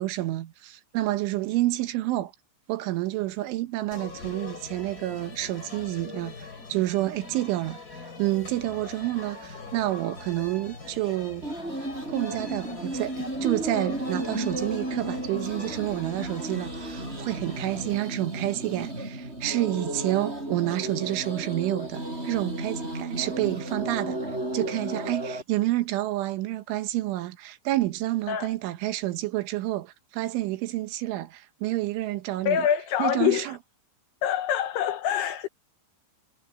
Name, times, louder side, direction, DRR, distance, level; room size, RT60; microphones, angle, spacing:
voice 1, 0.0-2.3 2.7-7.8 8.2-11.5 12.1-24.2 24.5-32.7 33.0-33.6, right 16 dB, 80° right, 3.6 m, -29 dB
sound 1, 3.9-18.0, left 4 dB, 25° left, 2.5 m, -43 dB
sound 2, 11.4-25.4, right 1 dB, 10° right, 7.6 m, -34 dB
voice 2, 32.5-33.5 34.2-35.5, left 10 dB, 75° left, 2.5 m, -25 dB
omnidirectional pair, 5.6 m